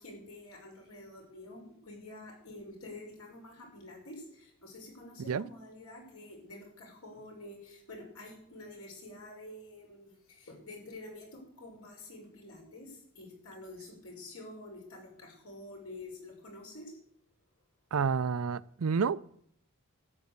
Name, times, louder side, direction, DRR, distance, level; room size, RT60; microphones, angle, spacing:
voice 1, 0.0-17.0, left 2 dB, 85° left, 5.6 m, -48 dB
voice 2, 17.9-19.3, right 6 dB, 80° right, 0.5 m, -30 dB
12.5 x 9.6 x 8.1 m
head